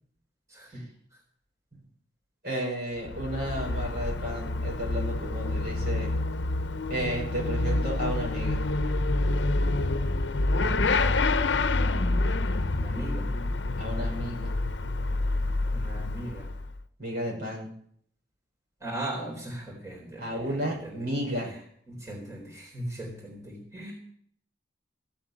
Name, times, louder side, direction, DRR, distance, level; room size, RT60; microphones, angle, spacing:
voice 1, 0.5-0.9 10.6-10.9 12.8-13.4 15.6-16.5 18.8-21.1 21.9-23.9, right 1 dB, 20° right, -2 dB, 3.9 m, -38 dB
voice 2, 2.4-6.1 6.9-8.6 13.8-14.5 17.0-17.7 20.2-21.5, right 1 dB, 60° right, -1 dB, 6.4 m, -32 dB
Motorcycle / Accelerating revving vroom, 3.0-16.8, left 2 dB, 75° left, 0.7 m, -27 dB
15.5 x 8.0 x 9.0 m, 0.65 s
head